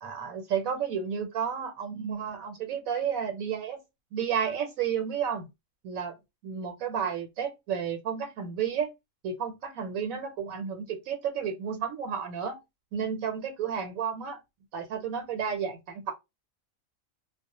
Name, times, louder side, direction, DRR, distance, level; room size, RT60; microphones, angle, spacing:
voice 1, 0.0-3.8 4.1-5.5 5.8-6.2 6.4-8.9 9.2-12.6 12.9-14.4 14.7-16.1, right 7 dB, 80° right, 1.0 m, -32 dB
2.3 x 2.1 x 2.7 m
omnidirectional pair, 1.4 m